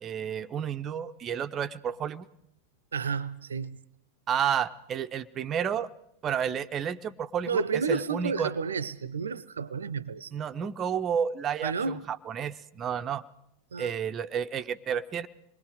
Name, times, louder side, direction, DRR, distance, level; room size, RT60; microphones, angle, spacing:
voice 1, 0.0-2.3 4.3-5.9 6.2-8.5 10.3-13.2 13.8-15.3, right 8 dB, 25° right, 0.7 m, -31 dB
voice 2, 2.9-3.8 7.5-10.3 11.6-12.1 13.7-13.9, right 5 dB, 70° right, 0.7 m, -31 dB
27.0 x 21.0 x 4.9 m
figure-of-eight pair, 90°, 0 cm